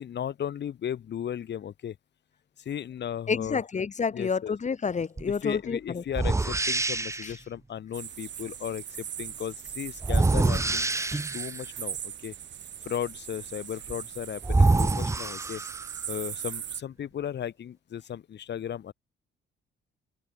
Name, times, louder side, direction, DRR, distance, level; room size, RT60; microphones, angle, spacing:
voice 1, 0.0-2.0 2.6-3.6 4.1-4.5 5.4-12.3 12.8-15.6 16.1-18.9, left 9 dB, 60° left, 3.5 m, -36 dB
voice 2, 3.3-6.0 7.2-7.3, left 5 dB, 35° left, 3.1 m, -29 dB
sound 1, 5.2-5.3 6.1-7.4 10.0-11.6 13.9-14.0 14.4-16.1, right 3 dB, 15° right, 0.9 m, -25 dB
sound 2, 7.9-16.8, right 9 dB, 65° right, 7.1 m, -39 dB
cardioid pair, 90°, 20 cm